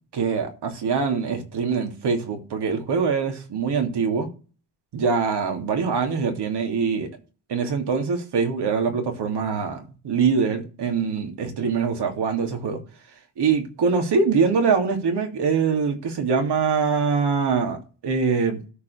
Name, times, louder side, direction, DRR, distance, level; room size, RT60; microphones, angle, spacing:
voice 1, 0.1-4.3 4.9-7.1 7.5-12.8 13.4-18.6, right 5 dB, 60° right, 3.1 m, -23 dB
13.0 x 5.0 x 6.4 m
hypercardioid pair, 50°, 45 cm